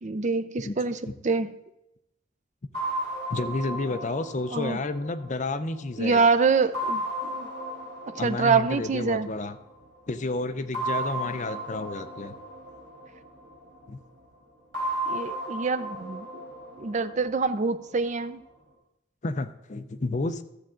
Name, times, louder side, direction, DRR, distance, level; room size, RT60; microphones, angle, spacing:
voice 1, 0.0-1.0 1.2-1.5 4.5-4.8 6.0-7.5 8.2-9.3 15.1-16.3 16.8-18.4, right 4 dB, 40° right, 11 dB, 0.5 m, -25 dB
sound 1, 2.7-6.1 6.7-9.7 10.7-13.9 14.7-17.9, right 1 dB, 55° right, 4.1 m, -35 dB
voice 2, 3.3-6.2 8.2-9.6 10.1-12.3 13.9-14.0 19.2-20.4, left 2 dB, 40° left, 10 dB, 0.5 m, -31 dB
13.5 x 7.2 x 3.8 m, 0.87 s
head